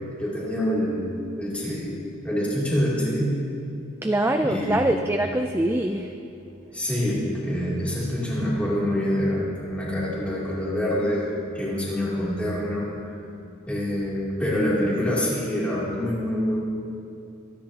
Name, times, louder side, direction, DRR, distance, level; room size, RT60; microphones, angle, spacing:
voice 1, 0.2-1.1 1.4-1.9 2.2-3.4 4.4-4.8 6.7-13.1 13.7-16.6, equal, 5° left, -7 dB, 2.9 m, -26 dB
voice 2, 4.0-6.1, right 1 dB, 10° right, 5 dB, 0.3 m, -23 dB
25.5 x 10.5 x 2.9 m, 2.6 s
head